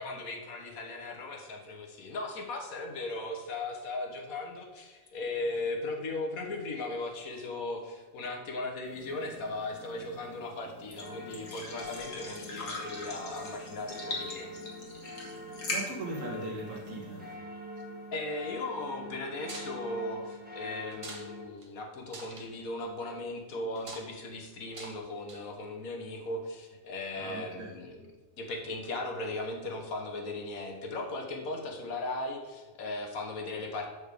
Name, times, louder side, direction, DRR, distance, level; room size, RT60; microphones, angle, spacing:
voice 1, 0.0-14.5 18.1-28.0 28.4-33.9, left 2 dB, 80° left, 1.6 m, -37 dB
sound 1, 8.8-17.3, left 2 dB, 65° left, 1.9 m, -42 dB
sound 2, 11.0-21.5, left 1 dB, 5° right, 1.0 m, -44 dB
voice 2, 15.7-17.4 17.8-18.1 27.1-27.7, right 1 dB, 65° right, 1.8 m, -40 dB
sound 3, 19.5-19.7 20.9-21.3 21.6-21.7 22.1-22.5 23.8-24.1 24.7-25.0 25.3-25.6, right 2 dB, 30° right, 0.7 m, -44 dB
6.9 x 5.2 x 4.9 m
omnidirectional pair, 1.5 m